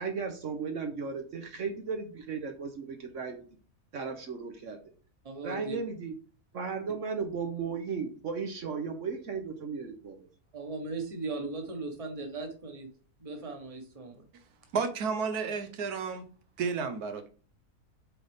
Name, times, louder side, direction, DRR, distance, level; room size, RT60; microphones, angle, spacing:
voice 1, 0.0-3.4 3.9-4.8 5.4-6.1 6.5-10.3, right 5 dB, 60° right, 1.1 m, -35 dB
voice 2, 5.2-5.8 10.5-12.9 13.2-14.2, right 3 dB, 25° right, 1.1 m, -38 dB
voice 3, 14.7-16.3 16.6-17.3, right 5 dB, 85° right, 1.4 m, -32 dB
7.6 x 4.0 x 3.5 m
omnidirectional pair, 1.6 m